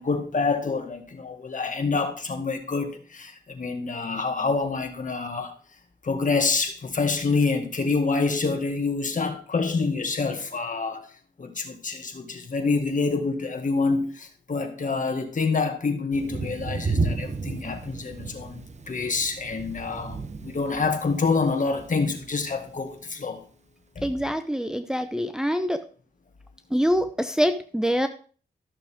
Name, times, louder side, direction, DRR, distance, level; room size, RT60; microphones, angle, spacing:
voice 1, 0.0-5.5 6.0-11.1 11.4-23.4 24.0-24.1, left 4 dB, 45° left, 1.8 m, -27 dB
Thunder, 16.1-22.9, right 3 dB, 40° right, 0.9 m, -33 dB
voice 2, 24.0-25.8 26.7-28.1, equal, 5° right, 0.7 m, -25 dB
13.0 x 6.7 x 3.6 m
cardioid pair, 70°, 18 cm